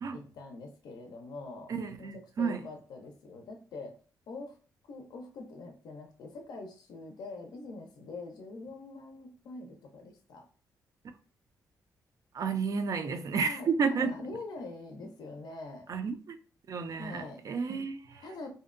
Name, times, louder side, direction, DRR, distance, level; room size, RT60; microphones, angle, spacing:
voice 1, 0.1-1.7 2.0-3.9 4.3-4.6 4.9-10.5 13.4-15.9 17.0-17.4 18.2-18.5, left 3 dB, 75° left, 0.4 m, -44 dB
voice 2, 1.7-2.6 12.3-14.1 15.9-16.4 16.7-18.3, right 5 dB, 55° right, 0.4 m, -31 dB
2.6 x 2.1 x 2.4 m
cardioid pair, 80°, 7 cm